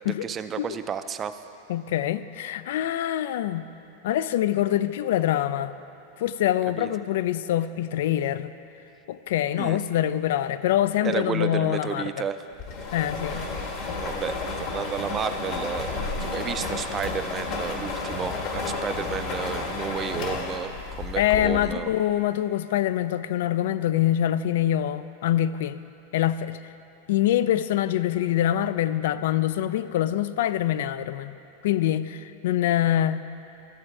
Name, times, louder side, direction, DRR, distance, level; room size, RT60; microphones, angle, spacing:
voice 1, 0.2-1.4 6.8-6.9 9.6-9.8 11.0-12.4 13.3-13.4 13.8-21.9, right 7 dB, 20° right, 10 dB, 0.4 m, -32 dB
voice 2, 1.7-3.7 4.0-5.7 6.2-8.5 9.1-12.3 12.9-13.5 21.2-25.8 26.1-26.6 27.1-31.4 31.6-33.2, left 12 dB, 70° left, 14 dB, 0.3 m, -25 dB
sound 1, 12.6-21.9, left 3 dB, 45° left, 1.4 m, -32 dB
12.0 x 7.7 x 4.7 m, 2.8 s
supercardioid pair, 145°, 0 cm